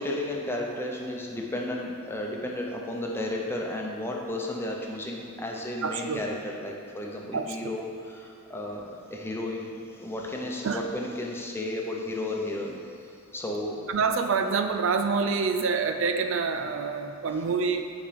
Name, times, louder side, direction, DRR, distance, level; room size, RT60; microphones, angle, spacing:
voice 1, 0.0-12.8 13.3-14.0, left 1 dB, 10° left, -1 dB, 0.8 m, -33 dB
voice 2, 5.8-6.2 7.3-7.7 10.6-10.8 13.9-17.9, right 5 dB, 65° right, 7 dB, 0.5 m, -27 dB
8.6 x 5.1 x 5.1 m, 2.4 s
head